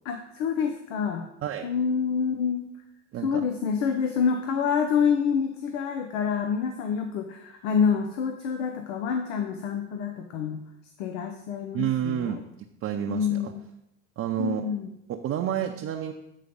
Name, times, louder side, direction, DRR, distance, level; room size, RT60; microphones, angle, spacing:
voice 1, 0.0-1.3 1.6-2.7 3.2-10.6 11.0-12.4 13.1-13.6 14.4-14.9, left 6 dB, 80° left, 6 dB, 0.8 m, -27 dB
voice 2, 11.7-12.4 12.8-13.5 14.2-14.6 15.1-16.1, right 10 dB, 40° right, 3 dB, 0.6 m, -29 dB
8.4 x 3.9 x 5.2 m, 0.84 s
supercardioid pair, 90°, 37 cm